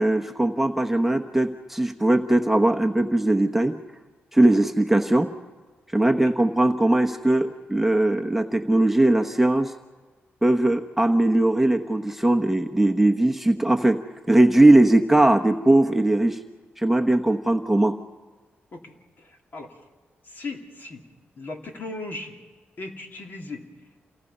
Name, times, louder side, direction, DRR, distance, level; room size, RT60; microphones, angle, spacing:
voice 1, 0.0-3.8 4.3-5.3 5.9-9.7 10.4-14.0 14.3-16.4 16.8-18.0, right 1 dB, 5° right, 4 dB, 1.1 m, -20 dB
voice 2, 18.7-19.8 20.2-21.0 21.4-22.4 22.8-23.7, left 2 dB, 50° left, 2 dB, 2.9 m, -37 dB
28.0 x 18.5 x 5.6 m, 1.3 s
cardioid pair, 95°, 4 cm